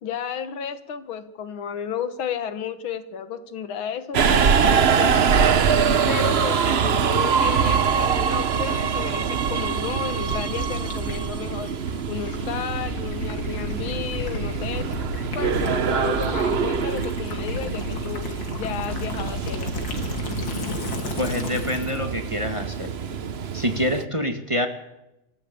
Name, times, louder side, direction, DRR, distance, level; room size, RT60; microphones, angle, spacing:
voice 1, 0.0-5.5 6.1-11.8 12.1-14.9 15.3-18.3 18.6-19.8, left 8 dB, 85° left, 11 dB, 2.2 m, -33 dB
Subway metro underground, 4.1-24.0, right 6 dB, 50° right, 0.7 m, -24 dB
Gurgling / Liquid, 9.5-22.1, left 2 dB, 65° left, 3.3 m, -33 dB
voice 2, 21.2-22.9 23.5-24.7, left 1 dB, 15° right, 5 dB, 1.7 m, -26 dB
26.5 x 14.0 x 8.5 m, 0.93 s
omnidirectional pair, 2.2 m